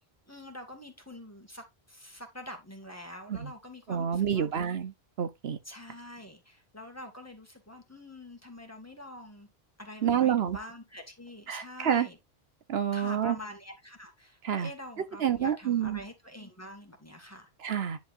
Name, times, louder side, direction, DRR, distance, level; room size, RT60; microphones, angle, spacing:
voice 1, 0.3-4.5 5.6-9.5 9.8-12.2 12.9-17.5, left 1 dB, 15° left, 2.1 m, -46 dB
voice 2, 3.9-4.9 5.2-5.6 10.0-10.6 11.5-12.1 12.7-13.4 14.4-14.7 15.2-16.0 17.6-18.0, right 8 dB, 70° right, 1.1 m, -28 dB
10.5 x 5.2 x 2.5 m
omnidirectional pair, 1.1 m